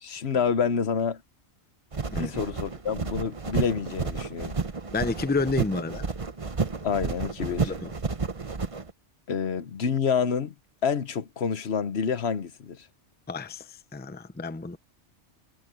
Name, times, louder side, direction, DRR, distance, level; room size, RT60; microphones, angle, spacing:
voice 1, 0.0-1.2 2.2-4.5 6.8-7.7 9.3-10.5 10.8-12.8, left 6 dB, 65° left, 1.2 m, -28 dB
sound 1, 1.9-8.9, right 4 dB, 30° right, 1.0 m, -31 dB
voice 2, 4.9-6.1 7.6-7.9 13.3-14.8, left 3 dB, 10° left, 0.6 m, -30 dB
omnidirectional pair, 1.2 m